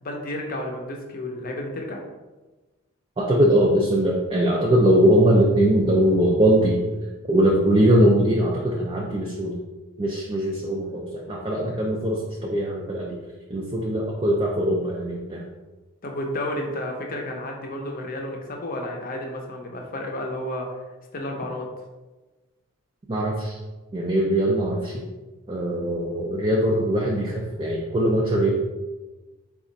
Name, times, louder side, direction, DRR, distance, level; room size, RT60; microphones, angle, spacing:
voice 1, 0.0-2.0 16.0-20.7 21.1-21.7, left 1 dB, 40° left, 1 dB, 0.6 m, -31 dB
voice 2, 3.2-6.8 7.3-9.5 10.0-13.2 13.5-15.5 23.1-23.6 23.9-25.0 25.5-28.5, right 1 dB, 25° right, -2 dB, 0.4 m, -21 dB
4.2 x 2.4 x 3.9 m, 1.2 s
head